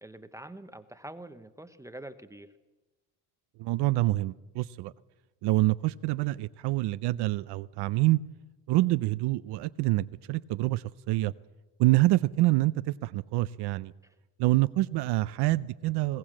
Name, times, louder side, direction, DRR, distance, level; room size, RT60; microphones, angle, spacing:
voice 1, 0.0-2.5 14.0-14.1, right 1 dB, 10° right, 10 dB, 0.7 m, -45 dB
voice 2, 3.6-4.9 5.4-8.2 8.7-11.3 11.8-13.9 14.4-16.2, right 18 dB, 70° right, 15 dB, 0.6 m, -26 dB
20.5 x 17.0 x 7.4 m, 1.1 s
cardioid pair, 145°, 41 cm